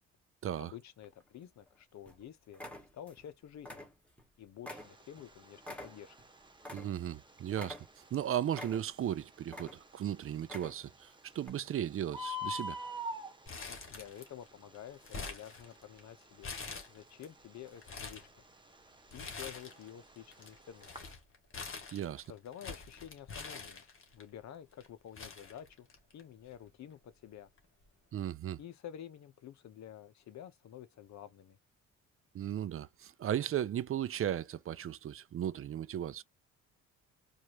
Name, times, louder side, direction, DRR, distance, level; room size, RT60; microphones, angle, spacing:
voice 1, 0.6-2.7 2.9-3.9 4.4-6.2 13.7-16.5 16.9-18.4 19.1-21.2 22.3-23.8 24.1-25.9 26.1-27.5 28.6-31.6, left 10 dB, 65° left, 0.9 m, -50 dB
sound 1, 1.0-1.7 2.1-2.2 2.5-3.3 3.6-4.3 4.6-7.2 7.5-8.2 8.5-9.1 9.4-10.0 10.4-11.0 11.4-11.5, left 1 dB, 5° left, 1.7 m, -47 dB
Bird, 4.8-21.1, left 1 dB, 15° right, 1.2 m, -47 dB
voice 2, 6.7-12.8 21.9-22.3 28.1-28.6 32.3-36.2, right 10 dB, 45° right, 0.5 m, -36 dB
Crumpling crinkling, 13.5-14.5 14.7-16.0 16.4-17.3 17.7-18.3 19.1-19.9 20.2-24.2 24.8-24.9 25.2-26.2 26.5-26.6 27.6-27.8, left 4 dB, 45° left, 2.0 m, -45 dB
4.6 x 2.6 x 2.9 m
cardioid pair, 90°, 30 cm